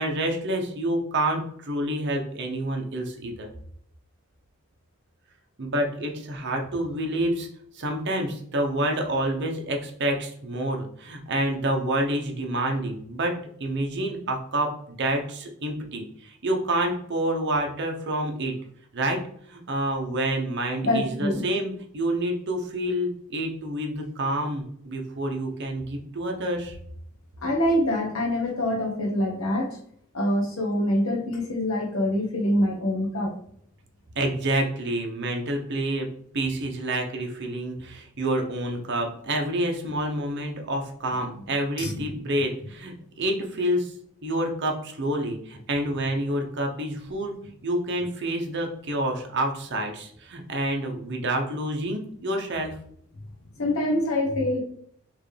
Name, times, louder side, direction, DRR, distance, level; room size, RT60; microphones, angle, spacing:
voice 1, 0.0-3.5 5.6-7.5 7.7-18.5 18.9-19.2 19.5-26.8 34.1-36.1 36.3-43.9 44.2-47.3 47.6-52.7, right 1 dB, 55° right, 2 dB, 0.8 m, -28 dB
voice 2, 20.8-21.4 27.4-29.8 30.1-33.3 41.8-42.1 53.6-54.6, left 1 dB, 70° left, 1 dB, 1.0 m, -25 dB
4.6 x 3.2 x 3.3 m, 0.66 s
head